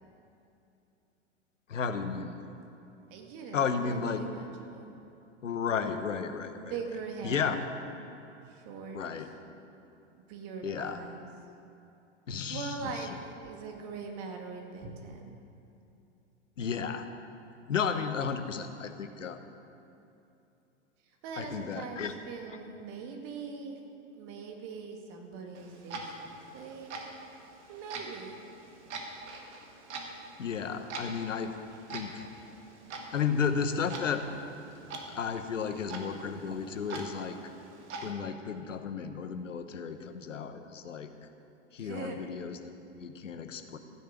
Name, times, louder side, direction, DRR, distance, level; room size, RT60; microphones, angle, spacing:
voice 1, 1.7-2.3 3.5-4.2 5.4-6.7 7.2-7.6 8.9-9.3 10.6-11.0 12.3-12.9 16.6-17.1 17.7-19.4 21.4-22.1 30.4-31.5 31.9-32.2 33.1-34.2 35.1-37.4 38.0-41.1 41.7-43.8, left 6 dB, 80° left, 8 dB, 1.1 m, -33 dB
voice 2, 3.1-5.0 6.5-7.6 8.4-9.3 10.1-11.3 12.5-15.3 21.0-23.8 24.2-27.0 27.7-28.4 41.8-42.2, right 5 dB, 45° right, 3 dB, 2.1 m, -42 dB
Clock, 25.5-38.1, right 3 dB, 65° right, 1.9 m, -44 dB
15.5 x 6.8 x 8.2 m, 2.8 s
figure-of-eight pair, 95°, 37 cm